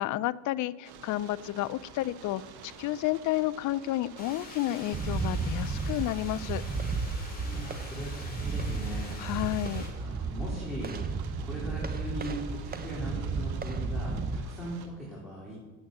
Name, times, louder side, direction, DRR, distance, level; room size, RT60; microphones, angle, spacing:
voice 1, 0.0-6.6 9.2-9.9, left 15 dB, 40° left, 19 dB, 0.5 m, -31 dB
sound 1, 0.8-14.9, right 6 dB, 50° right, 1.6 m, -50 dB
sound 2, 4.2-9.9, left 2 dB, 20° left, 3.7 m, -46 dB
sound 3, 4.9-14.4, right 4 dB, 20° right, 0.8 m, -33 dB
voice 2, 7.4-9.3 9.9-11.0 11.4-15.5, right 1 dB, ahead, -6 dB, 3.7 m, -39 dB
8.6 x 8.3 x 7.6 m, 1.4 s
supercardioid pair, 85°, 48 cm